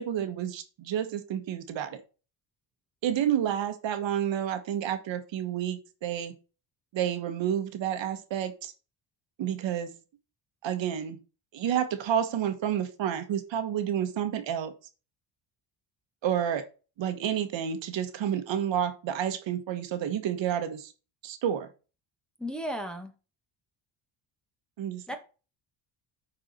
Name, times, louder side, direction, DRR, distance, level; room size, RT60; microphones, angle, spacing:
voice 1, 0.0-2.0 3.0-6.3 6.9-8.7 9.4-9.9 10.6-11.2 11.5-14.7 16.2-16.6 17.0-20.9 21.2-21.7 24.8-25.0, right 9 dB, 65° right, 1.5 m, -30 dB
voice 2, 22.4-23.1 25.1-25.2, equal, ahead, 1.6 m, -34 dB
9.1 x 4.8 x 4.3 m
cardioid pair, 115°, 48 cm